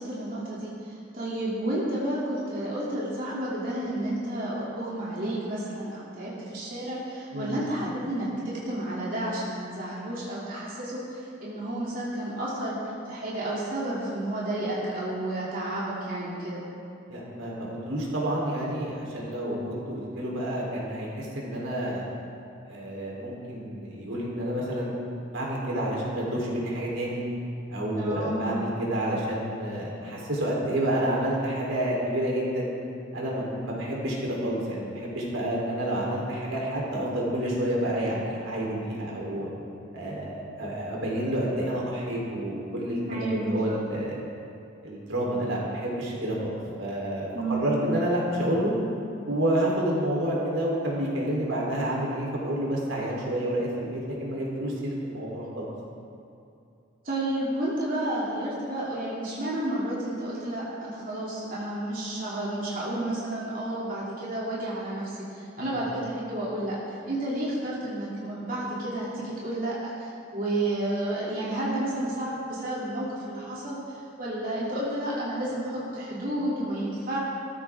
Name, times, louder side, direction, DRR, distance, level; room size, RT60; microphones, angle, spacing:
voice 1, 0.0-12.7 13.0-16.6 27.9-28.6 43.1-43.8 47.3-47.8 57.0-73.8 74.2-77.2, right 1 dB, 45° right, -7 dB, 3.0 m, -31 dB
voice 2, 17.1-22.1 22.7-25.0 25.3-27.2 27.7-32.7 33.1-39.5 39.9-44.2 44.8-46.5 46.8-48.7 49.3-55.7 65.6-65.7, right 1 dB, 85° right, -4 dB, 3.9 m, -29 dB
19.0 x 14.0 x 3.7 m, 2.6 s
head